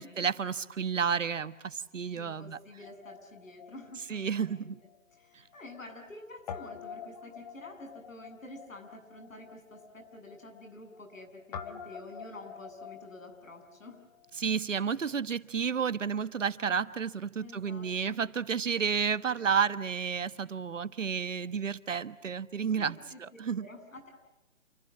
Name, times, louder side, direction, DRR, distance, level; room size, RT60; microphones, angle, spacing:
voice 1, 0.0-2.6 4.1-4.7 14.4-23.7, right 6 dB, 70° right, 13 dB, 1.4 m, -31 dB
voice 2, 2.1-4.7 5.1-14.0 17.4-18.2 22.8-23.2 23.6-24.1, left 2 dB, 80° left, 6 dB, 7.8 m, -49 dB
Guitar, 2.8-5.2 5.5-5.6 6.5-14.3, left 7 dB, 30° left, 1.7 m, -47 dB
28.5 x 27.5 x 7.5 m, 0.98 s
hypercardioid pair, 155°, 39 cm